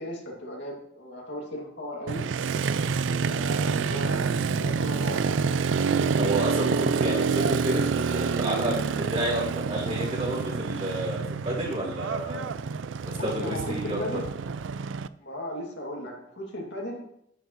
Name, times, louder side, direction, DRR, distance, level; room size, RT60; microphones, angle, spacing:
voice 1, 0.0-2.2 3.2-4.3 4.6-5.7 13.2-14.3 15.2-17.0, left 1 dB, 65° left, -1 dB, 2.6 m, -36 dB
Motorcycle, 2.1-15.1, right 5 dB, 75° right, 0.4 m, -27 dB
voice 2, 6.2-12.5 13.0-14.2, right 1 dB, 35° right, -7 dB, 4.0 m, -30 dB
11.0 x 10.5 x 3.2 m, 0.75 s
head